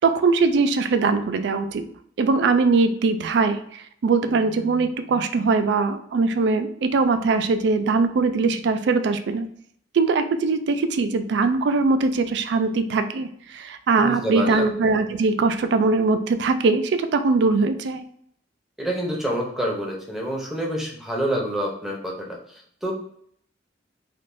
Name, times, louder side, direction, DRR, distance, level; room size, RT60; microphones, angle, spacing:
voice 1, 0.0-1.9 2.2-9.5 9.9-18.0, right 4 dB, 65° right, 9 dB, 0.3 m, -21 dB
voice 2, 14.0-14.7 18.8-22.1 22.5-22.9, right 1 dB, ahead, -2 dB, 0.7 m, -27 dB
3.5 x 2.6 x 2.6 m, 0.66 s
head